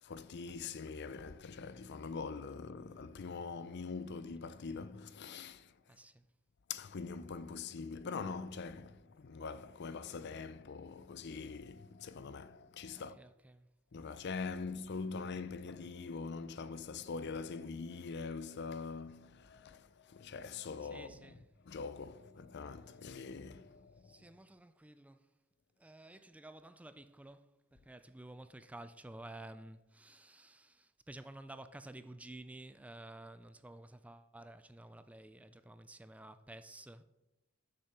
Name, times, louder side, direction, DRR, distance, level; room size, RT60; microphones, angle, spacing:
voice 1, 0.0-5.7 6.7-13.2 13.9-21.4 21.6-24.3, left 4 dB, 55° left, 0.5 m, -43 dB
voice 2, 5.9-6.2 13.0-13.7 20.8-21.5 24.0-25.3 25.8-37.0, right 1 dB, 5° right, 0.3 m, -52 dB
6.8 x 6.4 x 5.8 m
head